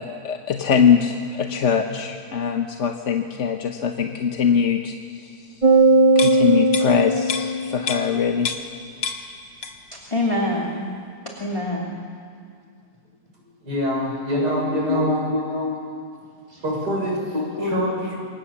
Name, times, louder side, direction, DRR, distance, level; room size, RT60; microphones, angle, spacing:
voice 1, 0.0-5.6 6.1-8.5, left 7 dB, 50° left, 4 dB, 1.3 m, -22 dB
sound 1, 5.6-8.1, right 2 dB, 20° right, 1.9 m, -18 dB
sound 2, 6.1-8.8 9.0-10.0 10.3-10.5, left 5 dB, 90° left, 2.1 m, -30 dB
voice 2, 10.1-10.9 11.4-12.0 14.3-15.9 16.5-16.6 17.3-17.8, left 2 dB, 20° left, -3 dB, 2.6 m, -25 dB
voice 3, 13.6-15.3 16.6-18.3, equal, 85° right, -2 dB, 7.4 m, -25 dB
28.5 x 24.5 x 7.2 m, 2.2 s
omnidirectional pair, 1.7 m